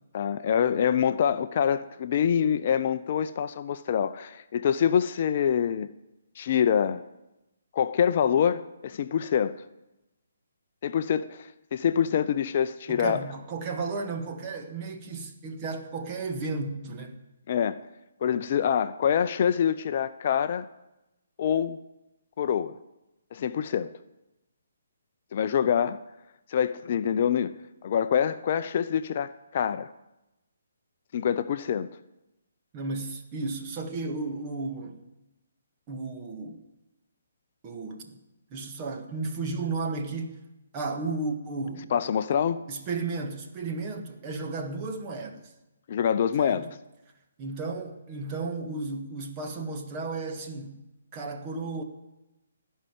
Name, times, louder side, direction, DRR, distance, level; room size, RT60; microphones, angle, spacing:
voice 1, 0.1-5.9 6.4-7.0 7.7-9.5 10.8-13.2 17.5-17.8 18.2-20.7 21.4-21.8 22.4-22.8 23.3-23.9 25.3-26.0 26.5-27.5 27.8-29.9 31.1-31.9 41.9-42.6 45.9-46.7, left 8 dB, 45° left, 0.5 m, -25 dB
voice 2, 12.9-17.2 32.7-35.0 35.9-36.6 37.6-38.2 38.5-40.4 40.7-41.9 42.7-45.5 46.4-46.7 47.4-50.8 51.1-51.8, right 3 dB, 30° right, 1.6 m, -34 dB
16.0 x 5.6 x 9.3 m
figure-of-eight pair, 140°, 0 cm